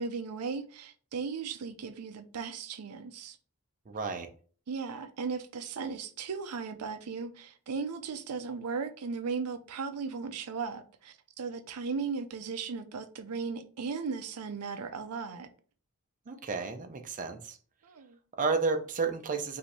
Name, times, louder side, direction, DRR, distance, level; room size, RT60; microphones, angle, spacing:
voice 1, 0.0-3.4 4.7-15.5 17.8-18.2, right 5 dB, 85° right, 0.5 m, -36 dB
voice 2, 3.9-4.3 16.3-17.6 18.4-19.6, right 4 dB, 35° right, 0.6 m, -31 dB
5.0 x 2.7 x 3.3 m
head